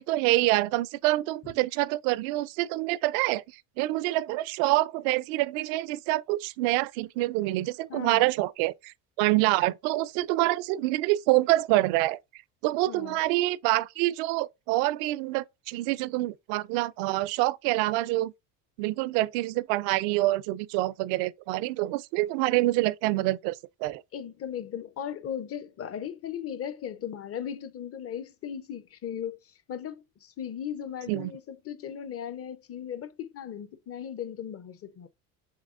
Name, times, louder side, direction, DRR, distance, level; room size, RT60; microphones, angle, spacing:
voice 1, 0.0-3.4 3.8-12.2 12.6-18.3 18.8-24.0 31.1-31.3, right 18 dB, 75° right, 0.5 m, -26 dB
voice 2, 7.9-8.3 12.9-13.2 24.1-35.1, left 9 dB, 35° left, 0.6 m, -37 dB
6.6 x 3.1 x 2.5 m
supercardioid pair, 90°, 42 cm